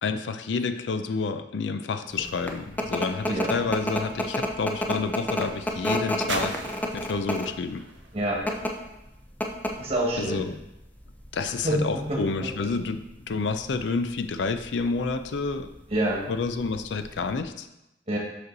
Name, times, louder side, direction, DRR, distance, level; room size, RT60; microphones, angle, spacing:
voice 1, 0.0-6.6 6.9-7.9 10.2-10.6 11.3-15.7 16.3-17.7, left 4 dB, 75° left, 9 dB, 0.4 m, -29 dB
sound 1, 2.2-17.4, left 1 dB, 10° left, 0.6 m, -32 dB
sound 2, 4.5-9.3 10.1-10.2, right 4 dB, 90° right, 0.8 m, -41 dB
voice 2, 9.7-10.5 11.6-11.8 12.1-12.2 15.9-16.2 18.1-18.2, right 1 dB, 35° right, -2 dB, 1.6 m, -26 dB
6.1 x 5.3 x 4.0 m, 0.91 s
head